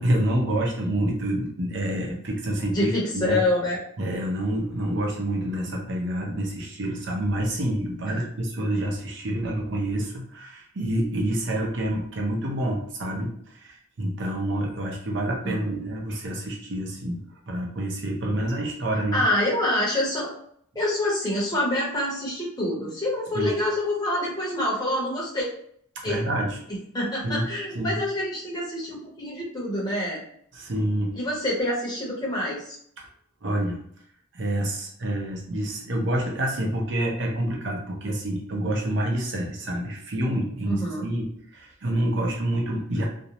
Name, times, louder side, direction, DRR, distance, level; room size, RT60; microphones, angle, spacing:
voice 1, 0.0-3.4 4.0-17.2 17.5-19.2 23.3-23.5 26.0-26.6 27.2-27.5 27.7-28.0 30.5-31.1 33.4-33.8 34.3-43.1, right 1 dB, 60° right, 0 dB, 0.7 m, -27 dB
voice 2, 2.7-3.8 8.1-8.2 15.4-15.8 19.1-20.3 20.7-25.5 26.0-26.2 26.9-30.2 31.2-32.8 40.7-41.0, left 1 dB, 20° left, -4 dB, 0.8 m, -26 dB
2.5 x 2.0 x 2.8 m, 0.64 s
head